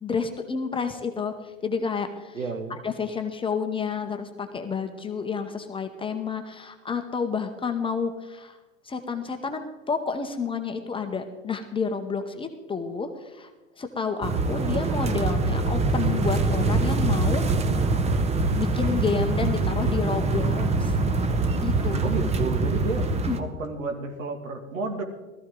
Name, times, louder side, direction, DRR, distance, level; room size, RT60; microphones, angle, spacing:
voice 1, 0.0-2.4 2.8-8.6 8.8-13.5 13.8-17.4 18.5-20.9 21.6-22.0 23.3-23.4, left 5 dB, 15° left, 6 dB, 1.0 m, -30 dB
voice 2, 2.3-2.8 22.0-23.1 23.4-25.0, right 3 dB, 75° right, 4 dB, 2.4 m, -31 dB
sound 1, 14.2-23.4, right 3 dB, 15° right, 1.0 m, -24 dB
17.5 x 14.0 x 3.8 m, 1.2 s
figure-of-eight pair, 95°, 40 cm